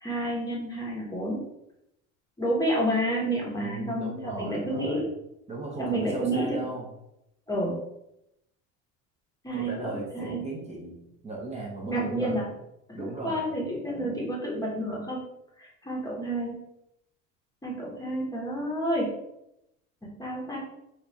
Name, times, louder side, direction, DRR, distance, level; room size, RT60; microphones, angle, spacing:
voice 1, 0.0-1.4 2.4-5.1 5.8-6.6 7.5-7.8 9.4-10.4 11.8-12.4 12.9-15.2 15.6-16.6 17.6-19.1 20.2-20.6, right 1 dB, 10° left, -4 dB, 0.9 m, -29 dB
voice 2, 3.6-5.1 5.5-6.9 9.5-11.0 11.2-12.4 12.9-13.5, right 2 dB, 20° right, -3 dB, 0.8 m, -37 dB
3.1 x 2.4 x 4.0 m, 0.84 s
cardioid pair, 130°, 32 cm